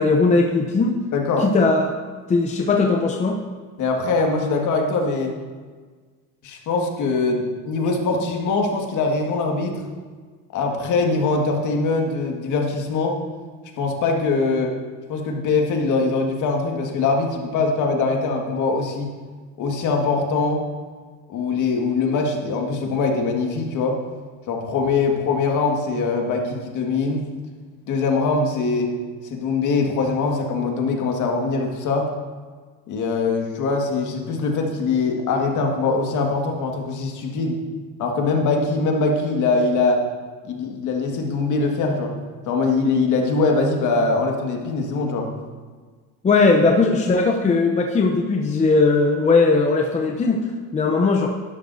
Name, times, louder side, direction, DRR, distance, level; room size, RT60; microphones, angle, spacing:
voice 1, 0.0-0.9 1.4-1.9 2.3-3.4 46.2-50.5 50.7-51.3, left 3 dB, 20° left, 2 dB, 0.7 m, -18 dB
voice 2, 1.1-1.5 3.8-5.4 6.4-9.8 10.5-13.2 13.8-14.8 15.1-19.1 19.6-20.6 21.3-24.0 24.5-27.3 27.9-28.9 29.2-32.1 32.9-37.6 38.0-40.0 40.4-42.1 42.5-45.3, left 3 dB, 50° left, 1 dB, 1.9 m, -22 dB
12.0 x 11.0 x 2.7 m, 1.5 s
supercardioid pair, 115°, 38 cm